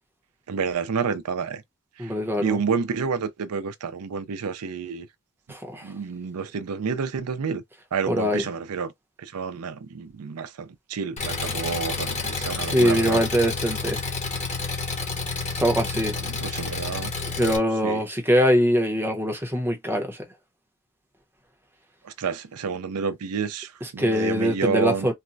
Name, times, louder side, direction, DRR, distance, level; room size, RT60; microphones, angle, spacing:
voice 1, 0.5-1.6 2.4-5.1 5.8-7.6 7.9-8.9 9.2-13.2 16.3-17.1 17.8-18.0 22.0-25.1, right 5 dB, 80° right, 0.5 m, -29 dB
voice 2, 2.0-2.6 5.5-5.8 8.0-8.5 12.6-14.0 15.5-16.2 17.4-20.2 23.8-25.1, equal, 10° right, 0.8 m, -23 dB
Engine, 11.2-17.6, left 4 dB, 30° left, 1.0 m, -30 dB
4.0 x 2.2 x 2.5 m
head